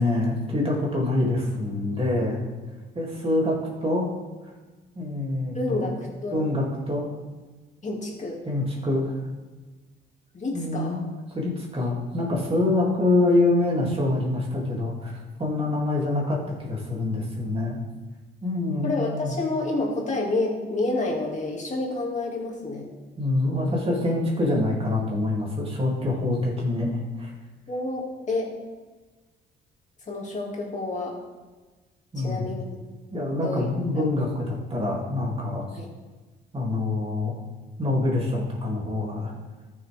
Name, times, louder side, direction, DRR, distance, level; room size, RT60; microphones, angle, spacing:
voice 1, 0.0-2.4 2.9-4.1 4.9-5.9 6.3-7.1 8.4-9.2 10.5-11.1 11.3-17.8 18.4-19.3 23.2-27.3 32.1-32.5 33.1-35.7 36.5-37.3 37.8-39.3, left 2 dB, 30° right, -3 dB, 2.9 m, -25 dB
voice 2, 5.5-6.5 7.8-8.4 10.3-11.0 18.8-22.9 27.7-28.5 30.1-31.2 32.2-32.7 33.3-33.7 34.0-34.1 35.7-35.9, left 2 dB, 35° left, -2 dB, 2.5 m, -29 dB
14.0 x 6.3 x 3.6 m, 1.3 s
cardioid pair, 90°, 20 cm